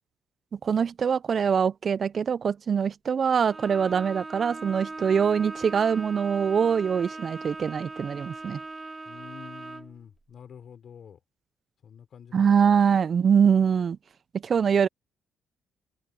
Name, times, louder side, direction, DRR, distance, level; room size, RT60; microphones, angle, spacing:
voice 1, 0.6-8.6 12.3-14.0 14.4-14.9, right 7 dB, 50° right, 0.4 m, -23 dB
Bowed string instrument, 3.5-10.0, right 3 dB, 25° right, 2.4 m, -40 dB
voice 2, 9.0-11.2 11.8-12.8 14.6-14.8, left 8 dB, 55° left, 4.5 m, -48 dB
open air
cardioid pair, 90°, 0 cm